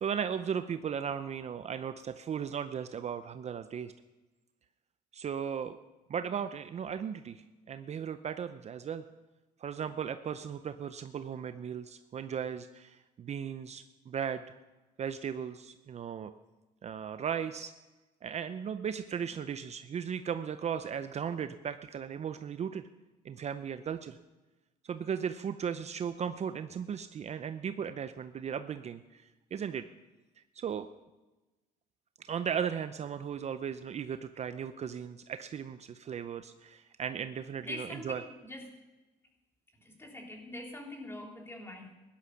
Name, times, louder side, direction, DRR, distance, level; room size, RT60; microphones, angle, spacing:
voice 1, 0.0-3.9 5.1-5.8 6.1-9.0 9.6-14.4 15.0-16.3 16.8-17.7 18.2-22.8 23.2-24.2 24.8-29.2 29.5-29.9 30.6-30.9 32.3-38.2, right 8 dB, 40° right, 10 dB, 0.7 m, -36 dB
voice 2, 37.6-38.7 39.8-41.9, left 1 dB, 15° left, 2 dB, 3.2 m, -44 dB
16.5 x 11.5 x 5.9 m, 1.1 s
cardioid pair, 110°, 17 cm